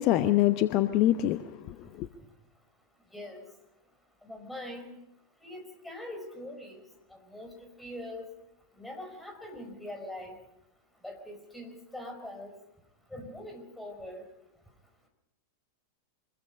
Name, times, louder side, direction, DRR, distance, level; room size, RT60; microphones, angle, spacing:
voice 1, 0.0-2.1, left 13 dB, 40° left, 0.8 m, -25 dB
voice 2, 3.1-3.4 4.2-4.8 5.4-6.8 7.1-8.3 8.8-10.4 11.0-12.5 13.1-14.2, left 1 dB, 5° left, 4.7 m, -42 dB
25.0 x 21.5 x 5.4 m
figure-of-eight pair, 90°, 0 cm